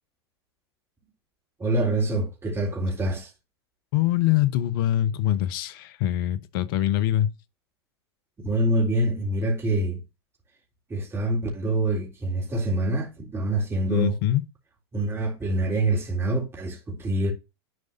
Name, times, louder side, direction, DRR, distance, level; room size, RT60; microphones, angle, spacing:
voice 1, 1.6-3.3 8.4-10.0 10.9-14.1 14.9-17.3, right 1 dB, 15° right, 3.5 m, -25 dB
voice 2, 3.9-7.3 13.9-14.4, left 13 dB, 55° left, 1.0 m, -23 dB
11.0 x 4.9 x 2.7 m
hypercardioid pair, 95°, 14 cm